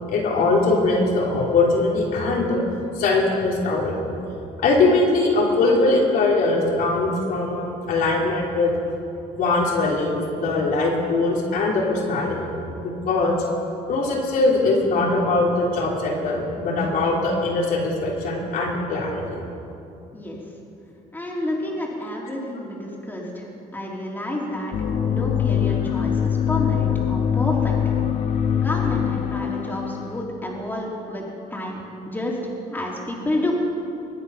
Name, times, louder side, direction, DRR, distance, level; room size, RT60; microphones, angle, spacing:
voice 1, 0.1-2.6 2.9-4.1 4.6-8.7 9.3-13.4 13.9-19.4, left 3 dB, 70° left, -3 dB, 3.4 m, -21 dB
voice 2, 21.1-24.7 25.1-27.7 28.6-31.8 32.1-33.5, left 1 dB, 10° left, -3 dB, 3.6 m, -29 dB
sound 1, 24.7-30.2, left 8 dB, 50° left, 0.9 m, -23 dB
23.0 x 9.8 x 5.7 m, 2.7 s
cardioid pair, 110°, 15 cm